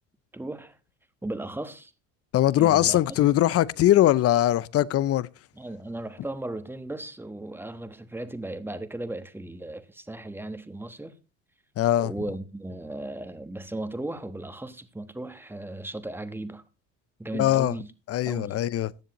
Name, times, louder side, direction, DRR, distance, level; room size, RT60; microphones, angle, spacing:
voice 1, 0.3-0.8 1.2-1.9 2.6-3.0 5.5-11.1 12.0-16.6 17.2-17.9 18.2-18.6, right 1 dB, 5° right, 1.2 m, -36 dB
voice 2, 2.3-5.3 11.8-12.1 17.3-17.7 18.1-18.9, left 13 dB, 40° left, 0.6 m, -21 dB
15.0 x 10.0 x 3.0 m
supercardioid pair, 100°, 36 cm